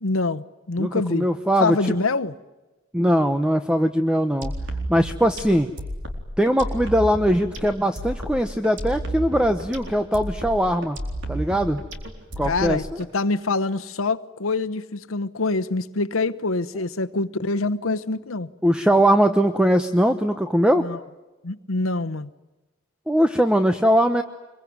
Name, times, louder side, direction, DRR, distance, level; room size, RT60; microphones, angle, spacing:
voice 1, 0.0-1.3 1.6-2.3 12.4-12.8 13.1-18.5 20.8-21.0 21.4-22.3, left 3 dB, 80° left, 1.0 m, -25 dB
voice 2, 0.8-2.0 2.9-4.5 4.9-5.7 6.4-11.0 11.3-11.8 12.4-13.0 18.6-20.9 23.1-24.2, equal, 5° right, 0.9 m, -20 dB
sound 1, 4.4-13.1, right 1 dB, 60° right, 4.2 m, -32 dB
25.5 x 23.5 x 9.5 m
head